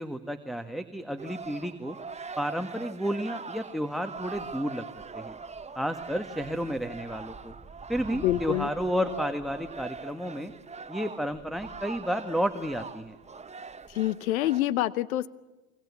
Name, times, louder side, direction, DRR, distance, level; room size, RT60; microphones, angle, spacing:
voice 1, 0.0-2.0 2.4-4.8 5.1-5.4 5.7-7.5 7.9-10.5 10.9-13.2, equal, ahead, 6 dB, 1.7 m, -31 dB
sound 1, 1.2-14.7, right 4 dB, 15° right, 1.4 m, -42 dB
voice 2, 8.2-8.7 13.9-15.3, left 14 dB, 80° left, 17 dB, 1.0 m, -26 dB
26.0 x 25.0 x 8.5 m, 1.1 s
hypercardioid pair, 85°, 42 cm